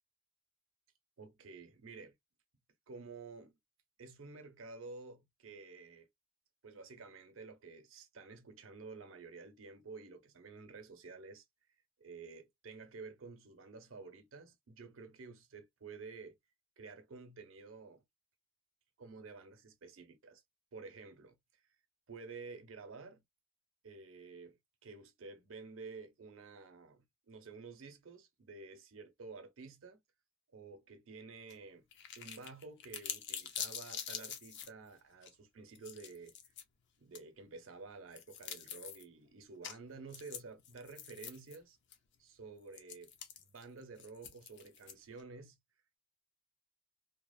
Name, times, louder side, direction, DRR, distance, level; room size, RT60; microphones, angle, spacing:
voice 1, 1.2-2.1 2.9-3.5 4.0-6.1 6.6-11.4 12.0-16.4 16.8-18.0 19.0-20.4 20.7-21.4 22.1-23.2 23.8-24.6 24.8-30.0 30.5-31.8 32.2-36.5 37.0-41.8 42.2-43.1 43.4-45.6, right 4 dB, 75° right, 0.6 m, -51 dB
sound 1, 31.5-31.6 31.9-34.7 35.2-35.3 35.7-36.6 37.1-37.2 38.1-39.0 39.6-39.8 40.1-41.6 41.9-42.0 42.7-45.2, left 8 dB, 55° left, 0.5 m, -45 dB
2.8 x 2.0 x 2.3 m
head